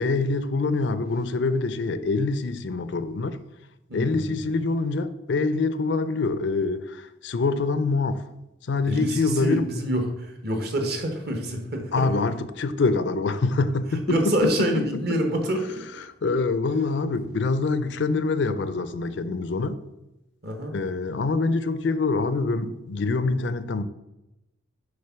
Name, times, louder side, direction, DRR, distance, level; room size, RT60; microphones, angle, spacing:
voice 1, 0.0-3.4 3.9-8.2 8.6-9.7 11.9-15.2 16.0-19.8 20.7-23.8, left 3 dB, 65° left, 0.5 m, -25 dB
voice 2, 3.9-4.3 8.9-12.1 14.1-15.9 20.4-20.7, right 1 dB, 55° right, 1.1 m, -27 dB
6.6 x 3.8 x 5.8 m
head